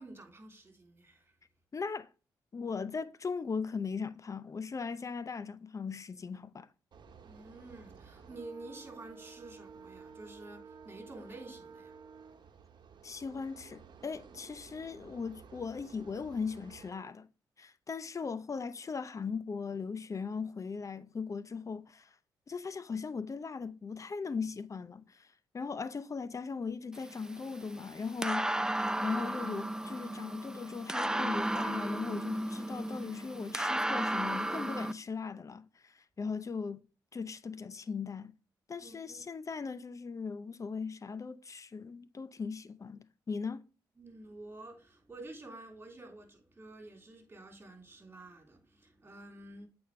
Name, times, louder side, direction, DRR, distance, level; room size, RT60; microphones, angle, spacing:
voice 1, 0.0-1.3 7.2-11.9 38.8-39.2 44.0-49.7, right 2 dB, 25° right, 3.3 m, -50 dB
voice 2, 1.7-2.1 2.5-6.7 13.0-17.3 17.6-22.1 22.5-25.3 25.5-28.5 29.0-36.8 37.1-38.3 38.7-43.6, left 5 dB, 40° left, 0.6 m, -38 dB
sound 1, 6.9-16.9, right 5 dB, 60° right, 1.1 m, -53 dB
sound 2, 26.9-34.9, right 1 dB, 10° right, 0.5 m, -34 dB
8.3 x 4.3 x 3.3 m
supercardioid pair, 60°, 9 cm